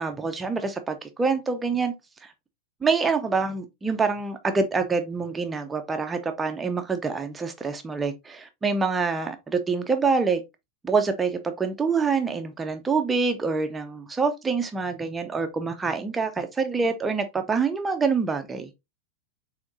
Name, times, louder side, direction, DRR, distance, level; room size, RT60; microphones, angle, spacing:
voice 1, 0.0-1.9 2.2-2.3 2.8-10.4 10.8-18.7, right 4 dB, 15° right, 0.6 m, -26 dB
7.0 x 2.8 x 2.6 m
figure-of-eight pair, 90°, 0 cm